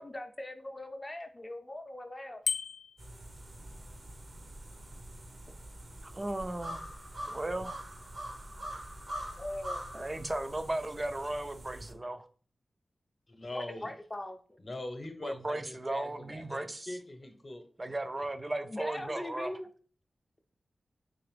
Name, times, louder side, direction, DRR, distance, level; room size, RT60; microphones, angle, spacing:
voice 1, 0.0-2.4 7.5-7.6 9.4-10.0 13.5-14.6 18.6-19.7, left 1 dB, 25° left, 0.5 m, -41 dB
Bicycle bell, 2.4-3.1, left 6 dB, 90° left, 0.3 m, -33 dB
sound 1, 3.0-11.9, right 1 dB, 55° right, 0.8 m, -44 dB
voice 2, 6.0-6.8 7.3-7.8 9.9-12.3 15.2-17.0 17.8-19.6, right 1 dB, 30° right, 0.4 m, -36 dB
voice 3, 13.3-13.9 14.6-17.6, left 1 dB, 50° left, 0.8 m, -42 dB
3.8 x 2.9 x 3.3 m
wide cardioid pair, 65°, 0 cm